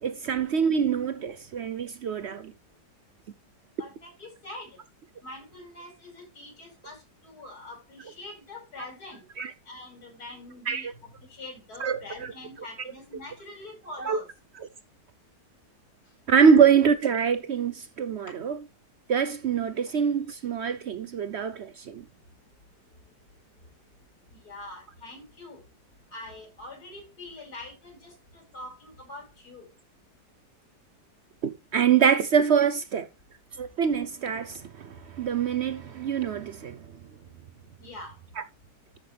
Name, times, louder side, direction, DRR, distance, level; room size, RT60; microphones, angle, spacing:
voice 1, 0.0-2.5 9.4-9.5 10.7-10.9 11.8-12.0 14.1-14.2 16.3-18.5 19.1-22.0 31.4-33.1 33.6-36.8, right 7 dB, 65° right, 0.6 m, -24 dB
voice 2, 3.8-4.8 5.2-9.2 9.7-14.3 24.3-25.6 26.1-29.7 37.8-38.2, left 2 dB, 60° left, 5.6 m, -44 dB
13.5 x 6.0 x 3.3 m
omnidirectional pair, 1.8 m